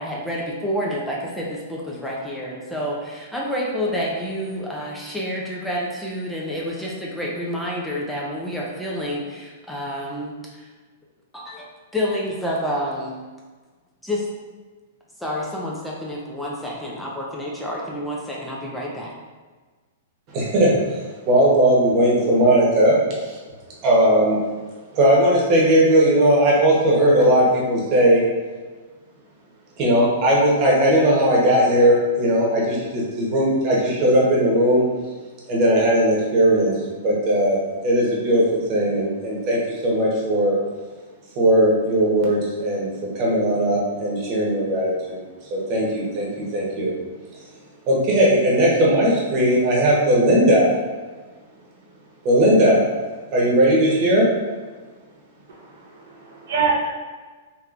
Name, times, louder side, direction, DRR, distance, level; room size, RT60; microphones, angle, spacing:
voice 1, 0.0-10.7 11.3-11.7 11.9-13.2 14.0-14.3 15.2-19.1, equal, 5° left, -4 dB, 0.5 m, -28 dB
voice 2, 20.3-20.7 21.3-23.4 23.8-24.4 24.9-28.2 29.8-34.8 35.5-36.7 37.0-37.6 37.8-40.6 41.4-45.2 45.5-46.3 46.5-46.9 47.9-50.7 52.2-52.8 53.3-54.2, right 1 dB, 40° right, -4 dB, 1.1 m, -18 dB
voice 3, 55.5-56.9, right 5 dB, 75° right, -4 dB, 0.9 m, -25 dB
3.1 x 3.1 x 2.5 m, 1.4 s
hypercardioid pair, 125°, 0 cm